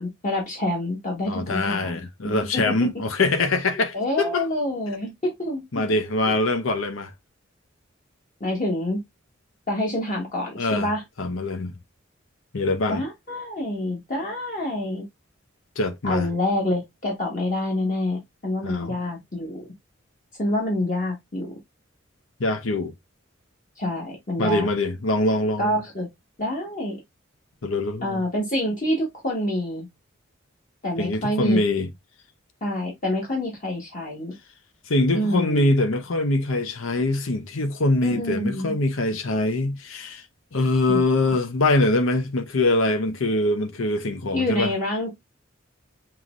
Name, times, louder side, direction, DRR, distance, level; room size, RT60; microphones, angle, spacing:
voice 1, 0.0-2.7 3.9-5.8 6.3-6.4 8.4-9.0 9.7-11.0 12.9-15.0 16.0-19.6 20.4-21.5 23.8-24.7 25.6-26.1 26.4-27.0 28.0-29.9 30.8-31.6 32.6-34.3 35.1-35.7 38.0-38.7 40.9-41.0 44.3-45.1, left 1 dB, 40° left, 1.4 m, -27 dB
voice 2, 1.3-4.5 5.7-7.1 10.6-10.9 11.2-11.7 12.5-13.0 15.8-16.3 18.6-19.0 22.4-22.9 24.4-25.8 27.6-28.2 31.0-31.9 34.9-40.2 40.5-44.7, left 2 dB, 80° left, 0.8 m, -23 dB
5.6 x 3.1 x 2.5 m
head